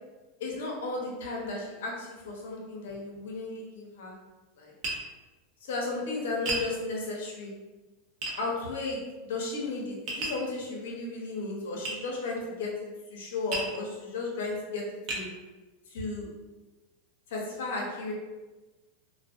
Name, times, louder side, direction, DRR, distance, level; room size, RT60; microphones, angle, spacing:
voice 1, 0.4-4.1 4.6-4.7 5.6-7.5 8.4-9.0 9.3-12.7 13.1-14.8 15.1-15.3 15.9-16.3 17.3-18.1, left 3 dB, 75° left, -2 dB, 0.7 m, -34 dB
Tap, 4.8-5.0 6.5-6.7 8.2-8.4 10.1-10.4 11.8-12.0 13.5-13.7 14.4-14.5 15.1-15.3, right 2 dB, 45° right, 0.7 m, -32 dB
2.4 x 2.2 x 2.4 m, 1.2 s
hypercardioid pair, 115°, 0 cm